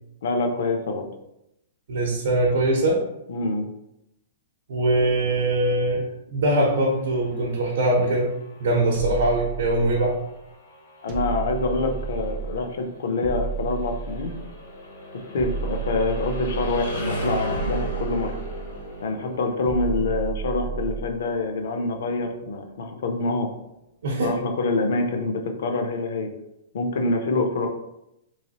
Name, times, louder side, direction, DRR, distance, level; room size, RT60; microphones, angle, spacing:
voice 1, 0.2-1.1 3.3-3.7 11.0-14.3 15.1-18.3 19.0-23.5 24.2-26.3 26.7-27.7, left 3 dB, 60° left, 4 dB, 0.5 m, -26 dB
voice 2, 1.9-3.0 4.7-8.3 8.6-10.2 24.0-24.4, right 1 dB, 60° right, -3 dB, 0.7 m, -22 dB
sound 1, 7.0-22.8, equal, 85° left, 1.3 m, -37 dB
sound 2, 8.9-10.3 11.1-12.7 13.2-14.6 15.4-17.0 17.5-18.9 19.6-21.3, right 7 dB, 20° right, 0.4 m, -32 dB
3.1 x 3.0 x 2.8 m, 0.85 s
hypercardioid pair, 180°, 0 cm